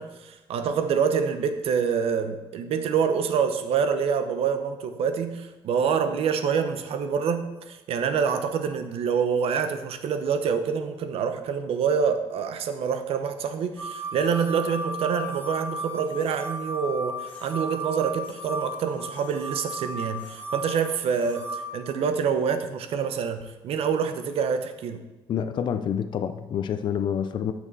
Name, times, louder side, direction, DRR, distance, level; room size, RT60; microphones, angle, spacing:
voice 1, 0.0-25.0, right 6 dB, 75° right, 9 dB, 0.8 m, -26 dB
sound 1, 13.8-21.7, right 1 dB, 15° left, 2.7 m, -35 dB
voice 2, 25.3-27.5, left 8 dB, 50° left, 9 dB, 0.5 m, -27 dB
9.0 x 6.2 x 4.1 m, 1.1 s
cardioid pair, 135°, 10 cm